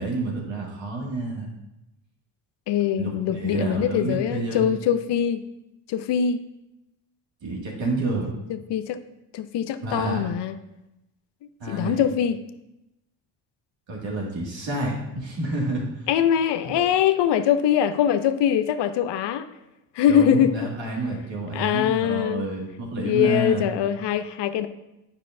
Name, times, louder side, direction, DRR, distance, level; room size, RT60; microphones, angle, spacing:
voice 1, 0.0-1.5 3.0-4.7 7.4-8.4 9.8-10.2 11.6-12.0 13.9-16.1 16.6-16.8 20.1-23.7, right 2 dB, 60° right, -2 dB, 2.1 m, -29 dB
voice 2, 2.7-5.4 5.9-6.4 8.5-9.0 9.3-10.5 11.7-12.4 16.1-19.5 20.0-20.7 21.5-22.5 23.0-24.7, left 9 dB, 60° left, 11 dB, 0.6 m, -23 dB
9.0 x 5.5 x 2.6 m, 0.92 s
supercardioid pair, 65°, 49 cm